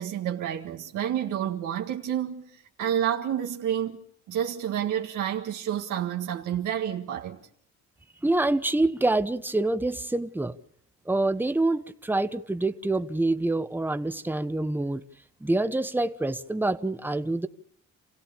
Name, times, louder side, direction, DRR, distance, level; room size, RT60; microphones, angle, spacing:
voice 1, 0.0-4.0 4.3-7.4, right 10 dB, 85° right, 1.8 m, -29 dB
voice 2, 8.2-10.6 11.1-15.0 15.4-17.5, right 2 dB, 5° right, 1.1 m, -26 dB
28.5 x 16.5 x 7.0 m
cardioid pair, 90°, 30 cm